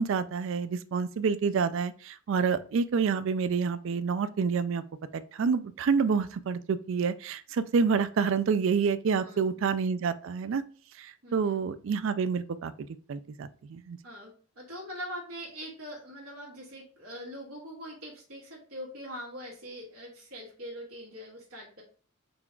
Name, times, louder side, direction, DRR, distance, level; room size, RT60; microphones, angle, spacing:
voice 1, 0.0-4.8 5.1-10.6 11.0-14.0, right 5 dB, 60° right, 13 dB, 0.3 m, -28 dB
voice 2, 9.2-9.6 11.2-11.6 14.0-21.8, equal, 90° right, -4 dB, 1.4 m, -43 dB
3.9 x 2.4 x 4.3 m, 0.41 s
head